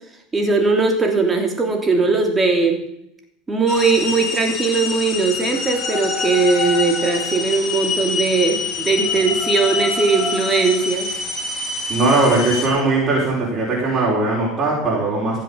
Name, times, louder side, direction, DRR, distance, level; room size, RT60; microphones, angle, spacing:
voice 1, 0.3-2.8 3.5-11.1, right 4 dB, 15° right, 3 dB, 2.9 m, -19 dB
sound 1, 3.7-12.7, left 4 dB, 35° left, 3.1 m, -25 dB
voice 2, 11.9-15.4, right 2 dB, 30° right, -4 dB, 4.9 m, -19 dB
15.5 x 7.6 x 7.2 m, 0.75 s
supercardioid pair, 125°, 0 cm